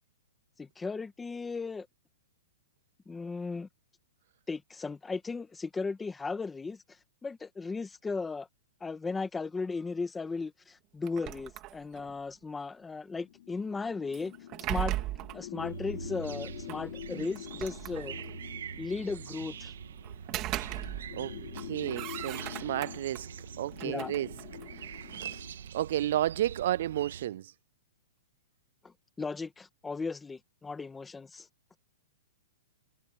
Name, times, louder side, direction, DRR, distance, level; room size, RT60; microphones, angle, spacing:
voice 1, 0.6-1.9 3.0-3.7 4.5-6.8 7.2-8.5 8.8-14.3 14.7-15.0 15.3-18.2 18.8-19.7 23.8-24.1 28.8-31.5, left 4 dB, 5° left, 1.7 m, -36 dB
sound 1, 11.0-12.2 14.1-15.5 16.7-16.8 17.4-18.4 20.0-21.3 21.5-23.2 23.7-25.3, right 16 dB, 25° right, 2.3 m, -38 dB
sound 2, 13.2-25.6, left 13 dB, 55° left, 3.9 m, -46 dB
sound 3, 15.6-27.3, right 7 dB, 80° right, 2.7 m, -44 dB
voice 2, 21.1-23.3 23.6-24.3 24.7-25.5 25.7-27.5, right 13 dB, 55° right, 0.3 m, -32 dB
hypercardioid pair, 165°, 0 cm